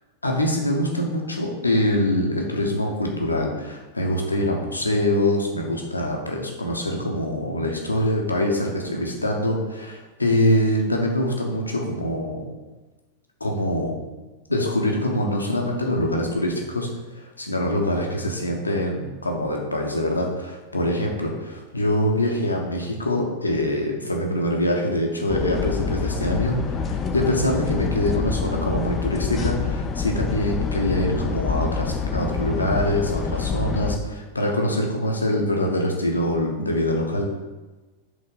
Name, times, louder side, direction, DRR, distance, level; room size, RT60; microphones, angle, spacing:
voice 1, 0.2-12.5 13.4-14.0 14.5-16.9 17.1-37.3, left 1 dB, 80° left, 1 dB, 1.0 m, -24 dB
sound 1, 25.3-34.0, left 5 dB, 25° left, 0.5 m, -27 dB
5.2 x 3.8 x 5.3 m, 1.2 s
figure-of-eight pair, 90°, 0 cm